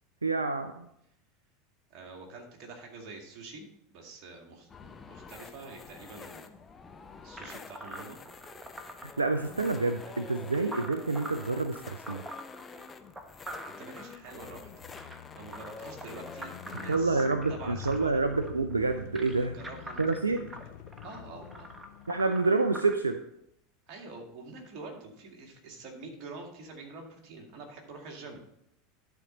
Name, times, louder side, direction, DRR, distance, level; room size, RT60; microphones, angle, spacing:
voice 1, 0.2-0.9 9.2-12.2 16.9-19.5 20.0-20.5 22.1-23.2, right 3 dB, 85° right, 8 dB, 0.4 m, -28 dB
voice 2, 1.9-3.7 3.9-6.5 7.2-8.2 13.6-14.7 15.3-18.2 19.4-20.0 21.0-21.7 23.9-28.4, right 3 dB, 45° right, 1 dB, 2.1 m, -46 dB
sound 1, 4.7-17.0, left 5 dB, 20° left, 0.7 m, -48 dB
sound 2, 7.4-22.9, right 1 dB, 10° right, 1.2 m, -45 dB
sound 3, 14.2-23.0, left 13 dB, 60° left, 0.4 m, -47 dB
11.0 x 4.4 x 5.1 m, 0.78 s
figure-of-eight pair, 80°, 0 cm